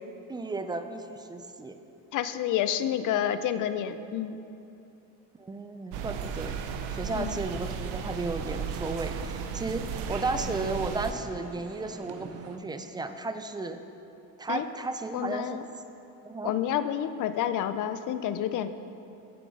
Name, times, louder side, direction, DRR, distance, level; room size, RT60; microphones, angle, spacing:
voice 1, 0.3-1.8 5.4-6.6 6.9-13.8 14.4-15.9 16.2-16.5, right 3 dB, 10° right, 8 dB, 0.3 m, -34 dB
voice 2, 2.1-4.4 7.1-7.4 14.5-14.6 15.1-15.6 16.4-18.7, left 10 dB, 50° left, 11 dB, 0.5 m, -29 dB
sound 1, 5.9-11.1, right 6 dB, 80° right, 0.8 m, -35 dB
sound 2, 7.6-12.6, right 5 dB, 40° right, 0.8 m, -46 dB
8.4 x 6.9 x 5.3 m, 2.8 s
supercardioid pair, 100°, 40 cm